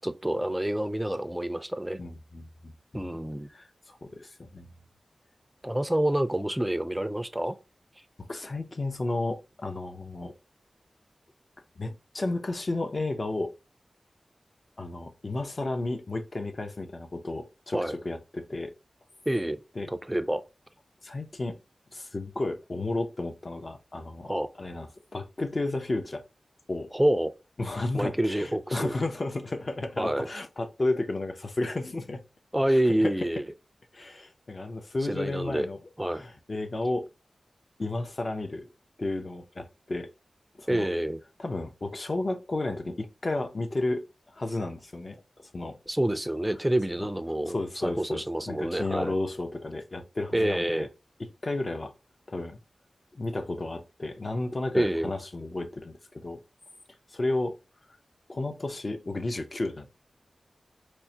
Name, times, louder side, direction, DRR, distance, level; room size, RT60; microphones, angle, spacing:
voice 1, 0.0-2.0 2.9-3.5 5.6-7.6 17.7-18.0 19.3-19.6 19.9-20.4 24.2-24.5 26.9-27.3 27.9-28.9 30.0-30.3 32.5-33.4 35.1-35.7 36.0-36.2 40.7-41.2 45.9-47.6 47.8-49.1 50.3-50.9 54.7-55.1, right 1 dB, 10° right, 0.4 m, -27 dB
voice 2, 2.0-3.1 3.5-4.7 8.2-10.3 11.8-13.5 14.8-18.7 19.8-19.9 21.0-21.6 21.9-24.3 24.6-26.2 26.7-26.9 27.6-32.2 32.7-33.1 33.9-35.8 36.1-37.1 37.8-38.7 39.0-40.1 40.5-40.9 41.4-44.0 44.3-45.2 45.5-45.8 47.5-50.9 51.4-51.9 52.3-52.6 53.1-56.4 57.1-57.6 58.3-59.9, left 2 dB, 50° left, 0.6 m, -32 dB
4.5 x 2.1 x 2.7 m
wide cardioid pair, 60°, 0 cm